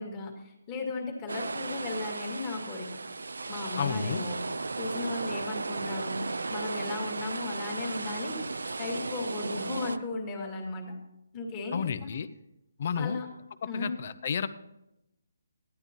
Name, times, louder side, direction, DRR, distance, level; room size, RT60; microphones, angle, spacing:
voice 1, 0.0-2.9 3.5-4.4 4.8-10.9 11.3-12.1 13.0-13.3 13.6-14.0, left 3 dB, 20° left, 1 dB, 2.1 m, -36 dB
sound 1, 1.3-10.0, right 3 dB, 90° right, 0.6 m, -35 dB
voice 2, 3.8-4.3 11.7-12.3 12.8-13.2 13.7-14.5, left 6 dB, 45° left, 13 dB, 0.7 m, -31 dB
15.5 x 11.5 x 3.0 m, 0.87 s
hypercardioid pair, 165°, 0 cm